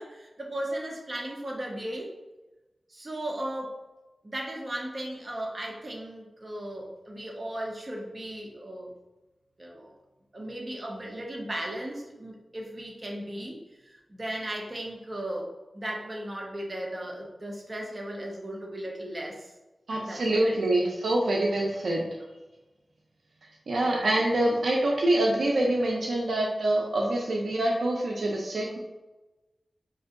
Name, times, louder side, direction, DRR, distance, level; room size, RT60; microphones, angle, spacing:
voice 1, 0.0-2.1 2.9-3.8 4.2-8.9 9.6-9.9 10.3-19.5 20.0-20.8 23.8-24.2, right 1 dB, 45° right, 0 dB, 0.9 m, -36 dB
voice 2, 19.9-22.1 23.7-28.8, right 1 dB, 85° right, -1 dB, 0.5 m, -25 dB
5.2 x 2.6 x 2.5 m, 1.1 s
cardioid pair, 50°, 0 cm